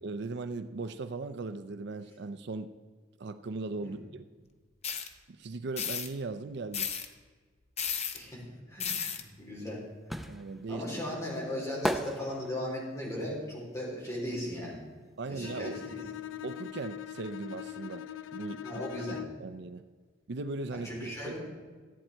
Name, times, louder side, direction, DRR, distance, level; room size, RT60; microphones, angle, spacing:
voice 1, 0.0-2.7 3.2-4.2 5.3-6.9 10.3-10.8 15.2-15.8 16.4-18.1 18.3-19.0 19.4-19.8 20.3-21.3, right 3 dB, 60° right, 11 dB, 0.5 m, -38 dB
sound 1, 4.8-5.1 5.8-6.1 6.7-7.1 7.8-8.2 8.8-9.2, left 7 dB, 35° left, 0.8 m, -33 dB
voice 2, 8.7-9.8 10.1-10.3 10.7-14.8 15.3-16.0 18.6-19.3 20.7-21.5, left 1 dB, 15° left, -5 dB, 3.9 m, -37 dB
sound 2, 9.4-15.1 15.4-17.0 17.2-17.3, equal, ahead, 0.5 m, -38 dB
Bowed string instrument, 15.4-19.5, left 10 dB, 75° left, 0.5 m, -42 dB
14.0 x 8.7 x 4.5 m, 1.5 s
head